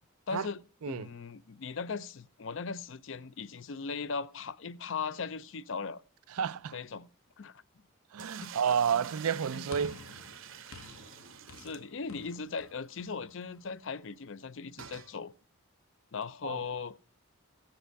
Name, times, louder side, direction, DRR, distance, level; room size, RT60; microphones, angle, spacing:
voice 1, 0.3-6.0 6.7-7.1 7.4-7.6 8.4-8.5 9.6-9.7 11.6-15.3 16.1-17.0, left 5 dB, 60° left, 0.5 m, -38 dB
voice 2, 6.3-6.8 8.1-10.0 16.4-16.6, right 7 dB, 85° right, 0.4 m, -30 dB
sound 1, 8.2-12.4 12.7-12.8 13.0-13.1 14.8-15.1, right 7 dB, 65° right, 0.9 m, -47 dB
sound 2, 9.7-14.1, left 3 dB, 75° left, 1.1 m, -52 dB
15.0 x 7.8 x 4.6 m
head